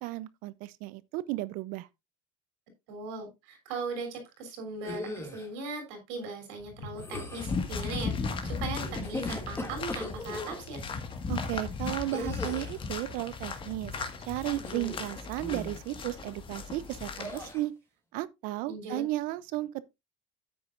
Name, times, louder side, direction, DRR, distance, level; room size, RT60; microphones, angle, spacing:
voice 1, 0.0-1.9 11.3-13.9 14.3-17.7 18.1-19.8, right 17 dB, 70° right, 0.6 m, -34 dB
voice 2, 2.9-10.8 18.7-19.0, right 3 dB, 90° right, 3.5 m, -39 dB
sound 1, 4.8-5.5 6.9-7.6 8.8-10.6 12.1-12.8 14.6-15.1 15.4-15.8 17.2-17.6, left 1 dB, 15° left, 2.4 m, -38 dB
sound 2, 6.6-14.7, left 3 dB, 55° left, 3.3 m, -48 dB
sound 3, 7.4-17.5, left 4 dB, 35° left, 1.7 m, -37 dB
10.0 x 8.5 x 2.5 m
cardioid pair, 120°, 14 cm